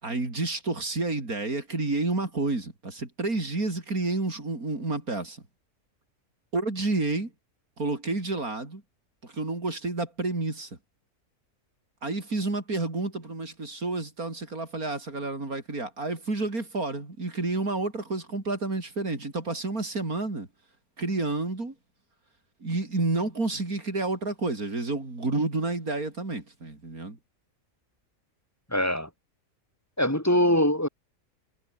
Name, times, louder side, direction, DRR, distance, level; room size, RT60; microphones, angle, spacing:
voice 1, 0.0-5.4 6.5-7.3 7.8-8.8 9.2-10.8 12.0-20.5 21.0-21.7 22.6-27.2, right 2 dB, 70° right, 5.0 m, -30 dB
voice 2, 28.7-29.1 30.0-30.9, left 1 dB, 10° left, 7.2 m, -23 dB
omnidirectional pair, 1.6 m